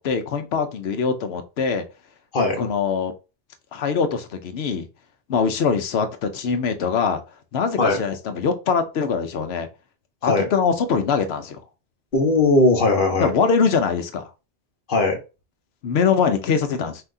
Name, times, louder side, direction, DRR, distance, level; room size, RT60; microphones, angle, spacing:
voice 1, 0.0-1.8 2.6-3.1 3.7-4.9 5.3-7.2 7.5-9.7 10.2-11.6 13.2-14.2 15.8-17.0, left 6 dB, 75° left, 8 dB, 1.0 m, -23 dB
voice 2, 12.1-13.3 14.9-15.2, left 2 dB, 55° left, 3 dB, 1.3 m, -18 dB
5.7 x 2.8 x 2.7 m, 0.29 s
omnidirectional pair, 1.1 m